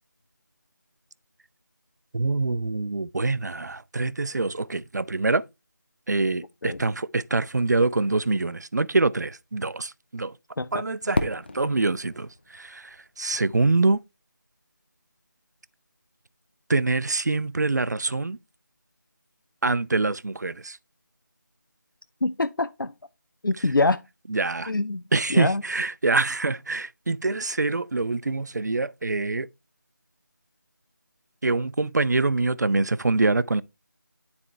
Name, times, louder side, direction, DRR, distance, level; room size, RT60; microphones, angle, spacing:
voice 1, 2.1-5.4 6.1-10.4 10.7-14.0 16.7-18.4 19.6-20.8 23.6-23.7 24.3-24.7 25.1-29.5 31.4-33.6, right 3 dB, 60° right, 0.4 m, -25 dB
Fireworks, 11.1-14.0, left 2 dB, 30° left, 0.6 m, -33 dB
voice 2, 22.2-22.9 23.4-24.0 24.7-25.0 25.3-25.6, left 2 dB, 90° left, 0.4 m, -24 dB
9.5 x 4.4 x 3.2 m
figure-of-eight pair, 165°, 11 cm